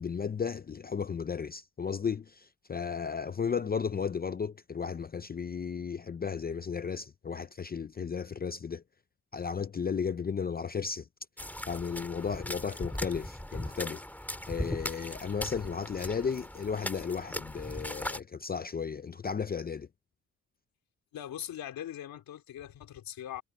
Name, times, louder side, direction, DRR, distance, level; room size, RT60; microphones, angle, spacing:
voice 1, 0.0-8.8 9.3-11.1 11.7-14.0 14.5-19.9, left 6 dB, 25° left, 0.6 m, -34 dB
sound 1, 11.4-18.2, left 1 dB, 5° left, 2.6 m, -38 dB
voice 2, 21.1-23.4, left 11 dB, 80° left, 3.2 m, -41 dB
cardioid pair, 100°, 34 cm